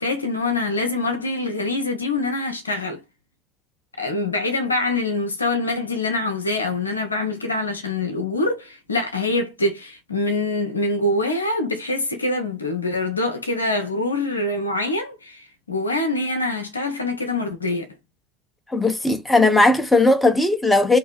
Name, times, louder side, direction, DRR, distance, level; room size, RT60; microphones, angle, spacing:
voice 1, 0.0-3.0 4.0-17.9, left 2 dB, 85° left, 0.7 m, -24 dB
voice 2, 18.7-21.0, left 2 dB, 10° left, 0.7 m, -17 dB
2.7 x 2.6 x 2.3 m
figure-of-eight pair, 70°, 0 cm